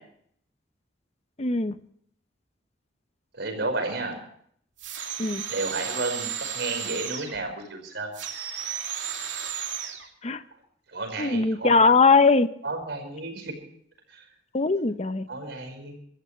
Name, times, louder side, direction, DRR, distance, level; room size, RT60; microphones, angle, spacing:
voice 1, 1.4-1.8 5.2-5.4 10.2-10.4 11.2-12.5 14.5-15.3, left 4 dB, 35° left, 12 dB, 0.8 m, -20 dB
voice 2, 3.4-4.2 5.5-8.1 10.9-11.9 12.6-13.5 14.1-14.2 15.3-16.0, right 2 dB, 65° right, 4 dB, 5.2 m, -32 dB
sound 1, 4.8-7.4 8.1-10.1, right 8 dB, 85° right, 2.8 m, -34 dB
24.5 x 14.5 x 3.2 m, 0.64 s
head